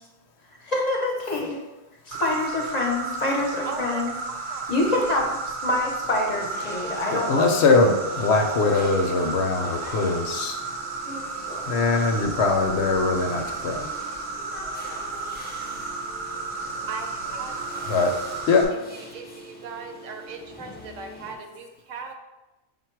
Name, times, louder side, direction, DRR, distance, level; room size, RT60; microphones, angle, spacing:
voice 1, 0.6-1.6 2.1-4.1 4.7-7.9 9.6-10.2 11.0-11.6 14.4-15.5, left 2 dB, 40° left, -1 dB, 0.7 m, -27 dB
Insect, 2.1-18.6, right 4 dB, 50° right, 0.7 m, -33 dB
voice 2, 3.6-4.7 14.8-15.1 16.3-16.4 16.9-17.5 18.9-22.1, right 5 dB, 85° right, 5 dB, 1.0 m, -39 dB
sound 1, 6.0-21.3, equal, 15° left, 0.4 m, -43 dB
voice 3, 6.7-10.6 11.7-13.9 17.9-18.1 18.5-18.7, left 3 dB, 70° left, 4 dB, 0.8 m, -22 dB
5.4 x 2.2 x 4.4 m, 1.0 s
omnidirectional pair, 1.2 m